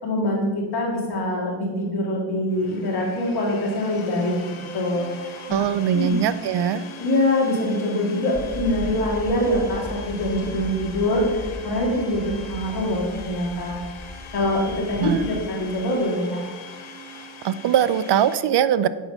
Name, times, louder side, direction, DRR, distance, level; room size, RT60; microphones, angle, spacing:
voice 1, 0.0-4.3 4.7-5.6 5.9-6.2 7.0-13.8 14.3-16.4, left 1 dB, 50° left, -4 dB, 3.0 m, -24 dB
Domestic sounds home sounds, 2.5-18.4, left 3 dB, 90° left, 1.3 m, -41 dB
voice 2, 5.5-6.8 15.0-15.3 17.4-18.9, right 9 dB, 60° right, 15 dB, 0.6 m, -21 dB
sound 1, 8.3-15.5, equal, 10° left, 0.8 m, -37 dB
8.4 x 5.5 x 5.7 m, 1.4 s
cardioid pair, 85°, 47 cm